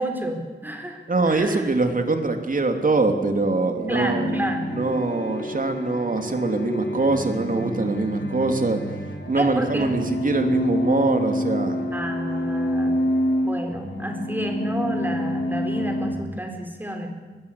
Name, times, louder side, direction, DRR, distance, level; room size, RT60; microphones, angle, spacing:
voice 1, 0.0-1.7 3.9-4.8 9.4-10.0 11.9-13.0 13.4-17.1, right 1 dB, 10° right, 4 dB, 4.3 m, -30 dB
voice 2, 1.1-8.8 9.3-11.8, right 3 dB, 50° right, 5 dB, 3.0 m, -23 dB
sound 1, 3.9-16.2, left 1 dB, 80° left, 4.9 m, -27 dB
23.5 x 20.5 x 8.5 m, 1.4 s
wide cardioid pair, 95°, 19 cm